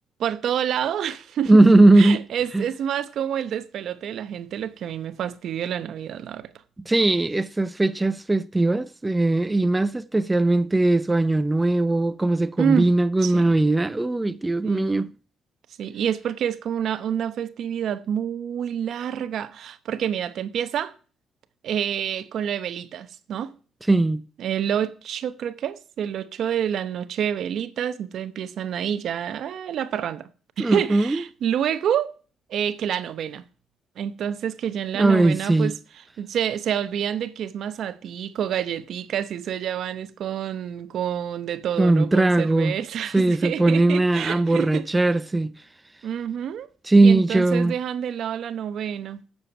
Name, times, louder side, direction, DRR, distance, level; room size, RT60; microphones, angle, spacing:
voice 1, 0.2-1.7 2.0-6.5 12.6-12.9 13.2-13.5 14.6-15.0 15.8-20.9 21.6-23.5 24.4-30.3 30.6-32.1 32.5-33.4 34.0-35.7 36.2-44.8 46.0-46.7 47.0-49.2, right 9 dB, 70° right, 0.8 m, -28 dB
voice 2, 1.5-2.2 2.5-2.7 6.9-15.1 23.9-24.2 30.6-31.2 34.9-35.7 41.8-42.7 43.1-45.5 46.8-47.7, right 2 dB, 15° right, 0.5 m, -19 dB
9.9 x 7.0 x 6.0 m
cardioid pair, 90°, 0 cm